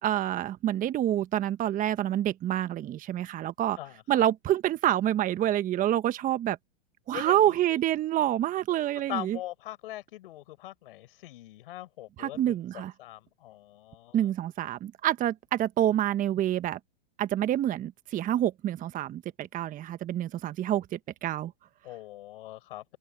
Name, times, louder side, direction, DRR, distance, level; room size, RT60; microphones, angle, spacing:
voice 1, 0.0-3.8 4.1-6.6 7.1-9.4 12.2-12.9 14.1-16.8 17.2-21.5, right 12 dB, 25° right, 1.2 m, -27 dB
voice 2, 3.8-4.3 7.1-7.8 9.1-14.2 21.8-22.8, left 15 dB, 65° left, 5.5 m, -42 dB
open air
hypercardioid pair, 110°, 30 cm